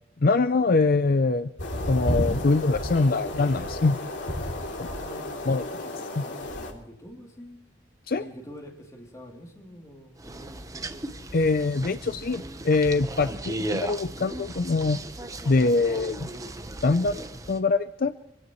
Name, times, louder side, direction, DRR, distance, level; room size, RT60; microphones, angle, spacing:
voice 1, 0.2-1.5 1.9-4.0 4.8-4.9 5.5-5.6 6.2-6.3 8.1-8.2 11.3-15.0 15.5-16.3 16.8-18.1, left 3 dB, 50° left, 11 dB, 0.5 m, -23 dB
sound 1, 1.6-6.7, left 1 dB, 70° left, 3.0 m, -32 dB
voice 2, 4.8-5.4 5.7-7.6 8.1-10.5, equal, 15° left, 1 dB, 2.9 m, -45 dB
sound 2, 10.2-17.6, right 1 dB, 20° right, 1.0 m, -36 dB
25.0 x 16.5 x 3.1 m, 0.75 s
head